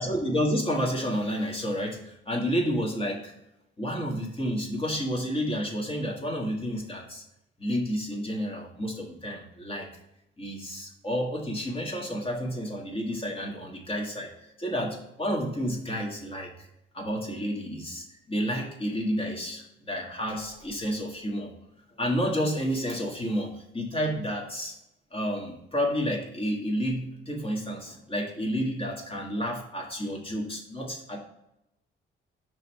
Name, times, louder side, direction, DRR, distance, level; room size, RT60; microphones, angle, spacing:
voice 1, 0.0-3.3 3.8-7.2 7.6-9.9 10.4-16.7 16.9-21.5 22.0-24.7 25.1-31.2, equal, 25° left, 0 dB, 1.5 m, -30 dB
5.3 x 3.3 x 5.3 m, 0.85 s
cardioid pair, 90°, 20 cm